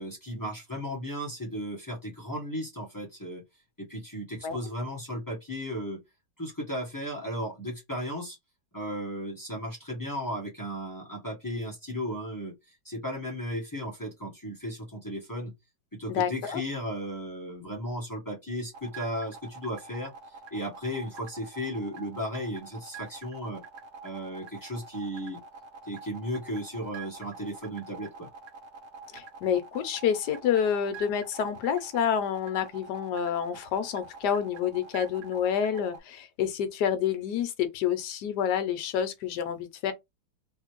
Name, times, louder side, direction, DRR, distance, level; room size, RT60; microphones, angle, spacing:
voice 1, 0.0-3.4 3.8-6.0 6.4-8.4 8.7-15.5 15.9-23.6 24.0-25.4 25.9-28.3, equal, 15° left, 0.9 m, -35 dB
voice 2, 16.1-16.6 29.1-39.9, left 8 dB, 70° left, 1.2 m, -28 dB
sound 1, 18.7-36.0, right 5 dB, 55° right, 1.0 m, -46 dB
3.2 x 2.7 x 2.9 m
omnidirectional pair, 1.9 m